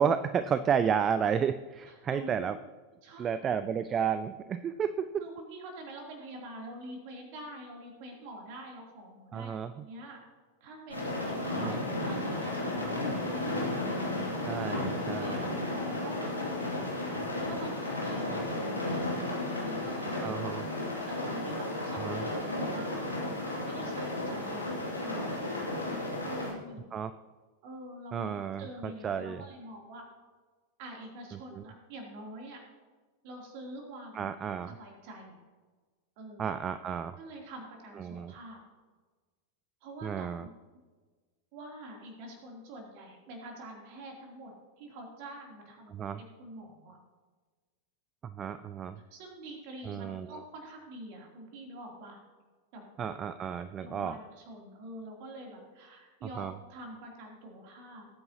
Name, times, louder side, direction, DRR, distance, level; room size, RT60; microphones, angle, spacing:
voice 1, 0.0-2.6 3.2-5.3 9.3-9.9 11.6-11.8 14.4-15.5 20.2-20.6 21.9-22.3 26.9-27.1 28.1-29.4 31.3-31.6 34.1-34.7 36.4-37.2 37.9-38.3 40.0-40.5 45.9-46.2 48.4-49.0 49.8-50.4 53.0-54.2 56.2-56.6, right 7 dB, 25° right, 12 dB, 0.4 m, -32 dB
voice 2, 1.9-2.6 3.0-3.6 5.2-9.5 9.7-10.2 10.6-14.0 14.8-16.3 17.5-23.0 23.6-26.8 27.6-30.1 30.8-32.6 33.2-34.3 34.7-35.4 36.2-36.6 37.2-38.6 39.8-40.6 41.5-44.5 44.8-47.0 49.1-52.2 52.7-53.1 53.8-58.1, right 1 dB, 45° right, 0 dB, 3.1 m, -46 dB
sound 1, 10.9-26.5, left 1 dB, 85° left, 2.5 m, -33 dB
18.5 x 9.2 x 2.9 m, 1.4 s
figure-of-eight pair, 90°, 0 cm